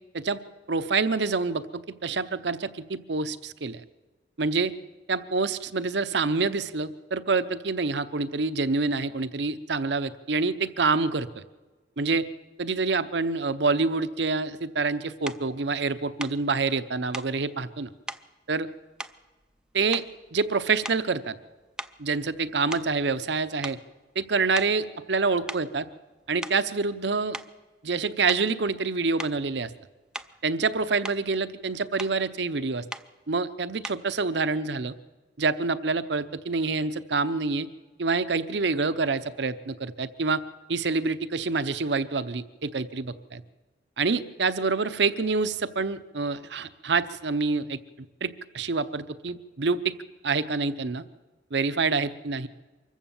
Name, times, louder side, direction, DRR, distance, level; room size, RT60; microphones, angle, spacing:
voice 1, 0.7-3.8 4.4-4.7 5.1-11.4 12.0-12.3 12.6-17.9 18.5-18.7 19.7-20.0 20.3-21.4 22.0-23.8 24.2-25.9 26.3-27.4 27.8-29.7 30.4-32.8 33.3-34.9 35.4-37.7 38.0-40.4 40.7-43.4 44.0-47.8 48.2-50.0 50.2-51.0 51.5-52.5, right 4 dB, 70° right, 13 dB, 0.8 m, -27 dB
sound 1, 15.3-15.5 16.2-16.4 17.1-17.4 18.1-18.3 19.0-19.6 19.9-20.3 20.8-21.2 21.8-23.3 23.6-23.9 24.6-24.8 25.5-25.7 26.2-26.7 27.3-27.6 28.3-28.5 29.2-29.4 30.1-30.4 30.8-31.3 32.0-32.2 32.9-33.1 33.8-34.1, right 1 dB, 5° right, 0.5 m, -39 dB
24.5 x 14.5 x 7.2 m, 1.2 s
head